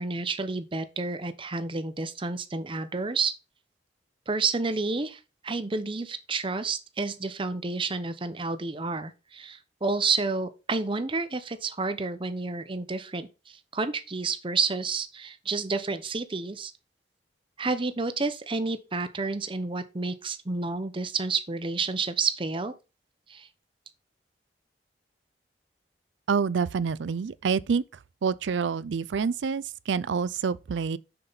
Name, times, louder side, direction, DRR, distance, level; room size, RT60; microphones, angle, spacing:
voice 1, 0.0-3.3 4.3-16.7 17.6-22.7 23.3-23.5, right 4 dB, 30° right, 0.8 m, -30 dB
voice 2, 26.3-27.8 28.2-31.0, right 6 dB, 90° right, 0.4 m, -27 dB
6.7 x 5.8 x 4.0 m
head